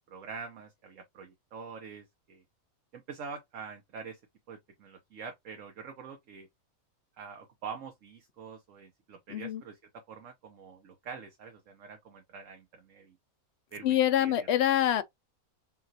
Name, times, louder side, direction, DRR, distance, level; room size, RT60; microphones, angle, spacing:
voice 1, 0.1-2.4 2.9-4.2 4.5-6.5 7.2-13.2 13.7-14.5, right 5 dB, 65° right, 1.2 m, -45 dB
voice 2, 9.3-9.6 13.8-15.0, left 11 dB, 65° left, 0.7 m, -25 dB
5.8 x 2.5 x 2.7 m
omnidirectional pair, 1.5 m